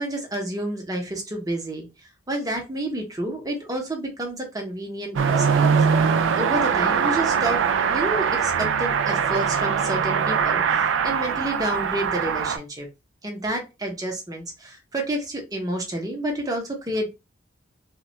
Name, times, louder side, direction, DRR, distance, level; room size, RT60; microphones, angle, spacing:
voice 1, 0.0-1.9 2.3-5.7 6.3-7.6 7.9-12.9 13.2-17.1, right 1 dB, 20° right, 2 dB, 0.7 m, -29 dB
Car passing by / Accelerating revving vroom, 5.2-12.6, right 6 dB, 80° right, 0.3 m, -22 dB
2.2 x 2.1 x 3.8 m, 0.26 s
head